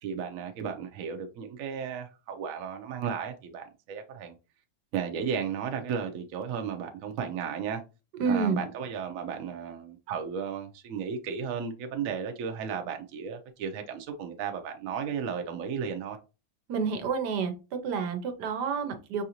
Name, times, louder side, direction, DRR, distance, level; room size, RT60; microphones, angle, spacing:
voice 1, 0.0-4.3 4.9-7.8 8.3-16.2, right 7 dB, 65° right, 1.0 m, -34 dB
voice 2, 8.2-8.6 16.7-17.5 17.8-19.2, right 5 dB, 80° right, 1.3 m, -28 dB
5.5 x 2.5 x 2.9 m
omnidirectional pair, 1.8 m